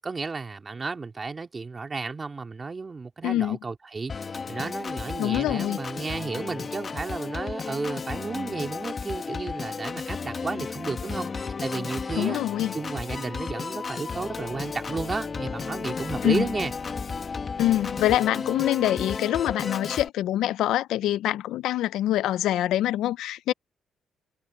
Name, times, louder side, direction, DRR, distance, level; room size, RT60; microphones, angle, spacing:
voice 1, 0.0-12.4 12.7-16.7, right 4 dB, 30° right, 3.6 m, -33 dB
voice 2, 3.2-3.6 5.2-5.8 12.2-12.7 16.2-16.5 17.6-23.5, left 13 dB, 85° left, 0.6 m, -25 dB
Organ, 4.1-20.1, left 5 dB, 40° left, 1.9 m, -33 dB
cardioid pair, 90°, 0 cm